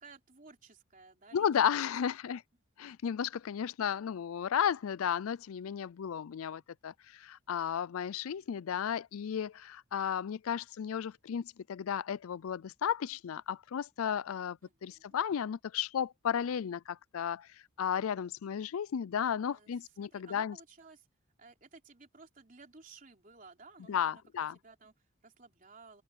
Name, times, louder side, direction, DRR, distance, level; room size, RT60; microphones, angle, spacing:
voice 1, 0.0-1.6 14.6-15.2 19.5-21.1 21.4-24.2 24.5-26.0, right 4 dB, 40° right, 3.5 m, -56 dB
voice 2, 1.3-2.4 2.8-17.5 17.8-20.6 23.9-24.6, left 8 dB, 85° left, 0.4 m, -34 dB
open air
head